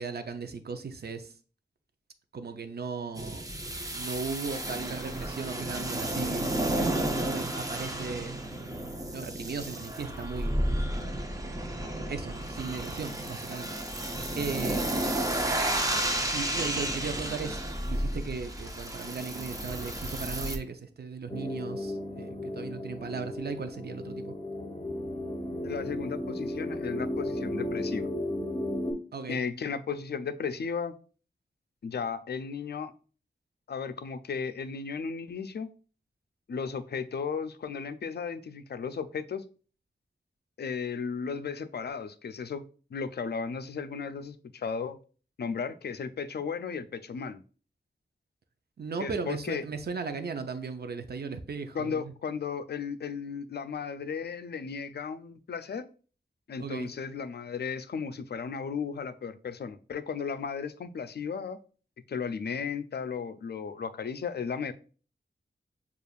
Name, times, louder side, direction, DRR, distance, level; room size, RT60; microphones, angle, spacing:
voice 1, 0.0-1.3 2.3-3.4 3.9-8.4 9.1-10.9 11.8-13.8 14.4-15.6 16.3-24.3 29.1-29.4 48.8-52.1 56.6-56.9, right 5 dB, 65° right, 0.6 m, -37 dB
sound 1, 3.1-20.6, right 1 dB, 20° right, 0.5 m, -32 dB
sound 2, 21.3-28.9, left 1 dB, 20° left, 1.1 m, -34 dB
voice 2, 25.6-28.1 29.3-31.0 31.8-32.9 33.7-35.7 36.5-39.4 40.6-42.6 42.9-45.0 45.4-47.4 49.0-49.6 51.7-55.9 56.5-61.6 62.1-64.7, left 6 dB, 65° left, 0.4 m, -35 dB
6.7 x 2.4 x 2.4 m
wide cardioid pair, 80°, 18 cm